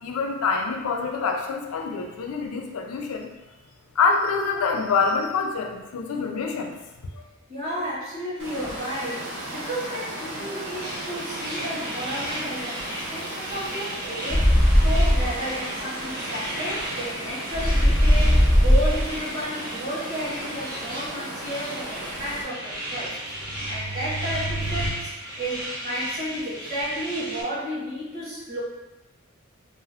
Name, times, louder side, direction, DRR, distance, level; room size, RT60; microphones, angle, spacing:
voice 1, 0.0-3.3 4.0-6.8 7.1-7.2, left 4 dB, 85° left, 3 dB, 0.4 m, -26 dB
voice 2, 7.5-14.5 14.8-25.1 25.4-28.6, equal, 45° right, -9 dB, 1.2 m, -32 dB
Water, 8.4-22.4, right 1 dB, 60° right, 0.7 m, -36 dB
sound 1, 10.8-27.4, right 1 dB, 20° right, 0.7 m, -36 dB
sound 2, 14.3-15.3 17.5-19.1 23.3-24.9, equal, ahead, 0.4 m, -20 dB
2.6 x 2.2 x 3.4 m, 1.0 s
head